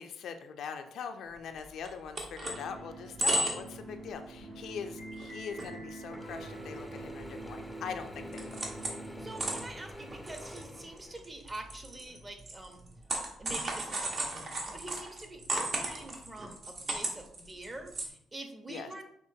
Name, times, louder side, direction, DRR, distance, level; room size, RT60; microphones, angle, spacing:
voice 1, 0.0-8.7 18.7-18.9, left 6 dB, 70° left, 6 dB, 0.4 m, -42 dB
sound 1, 1.6-1.7 1.8-2.6 3.0-3.8 4.1-4.3 4.7-4.8 5.2-5.7 6.0-6.1 6.7-7.7 8.0-9.1 9.4-18.1, right 1 dB, 50° right, 1.0 m, -35 dB
sound 2, 2.4-9.7, right 2 dB, 70° right, 1.6 m, -45 dB
Mechanisms / Drill, 6.1-11.6, left 1 dB, 10° left, 0.5 m, -47 dB
voice 2, 9.1-12.8 13.4-19.0, right 2 dB, 25° right, 5 dB, 0.8 m, -45 dB
5.8 x 2.9 x 2.7 m, 0.72 s
cardioid pair, 90°, 0 cm